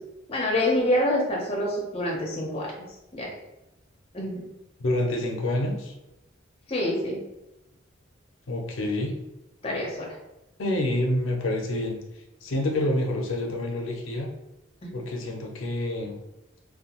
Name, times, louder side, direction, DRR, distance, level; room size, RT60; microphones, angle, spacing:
voice 1, 0.3-2.7 3.1-3.3 4.1-4.4 6.7-7.2 9.6-10.1 14.8-14.9, left 1 dB, 30° left, -2 dB, 0.6 m, -26 dB
voice 2, 4.8-5.9 8.5-9.1 10.6-12.0 12.4-14.3 14.9-16.2, left 1 dB, 80° left, 2 dB, 0.5 m, -27 dB
2.6 x 2.2 x 2.9 m, 0.93 s
head